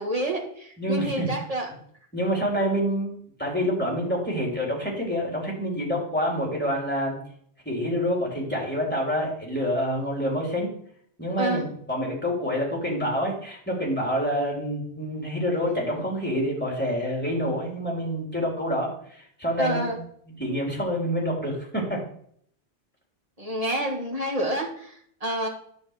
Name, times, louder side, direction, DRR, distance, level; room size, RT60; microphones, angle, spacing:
voice 1, 0.0-1.7 11.4-11.7 19.6-20.0 23.4-25.5, right 1 dB, 30° right, 1 dB, 2.1 m, -28 dB
voice 2, 0.8-1.3 2.1-7.2 7.7-10.7 11.2-20.0 20.4-22.0, equal, 10° left, -3 dB, 3.4 m, -27 dB
10.0 x 4.6 x 7.5 m, 0.63 s
omnidirectional pair, 1.2 m